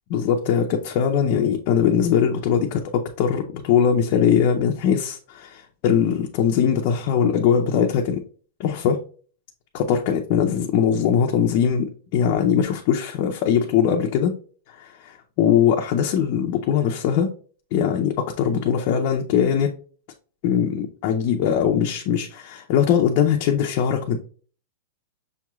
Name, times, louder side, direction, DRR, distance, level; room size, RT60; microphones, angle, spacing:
voice 1, 0.1-8.2 8.6-9.0 9.7-14.3 14.8-17.3 17.7-19.7 20.4-24.2, left 8 dB, 45° left, 2 dB, 0.5 m, -21 dB
6.3 x 3.0 x 2.3 m, 0.41 s
supercardioid pair, 155°, 0 cm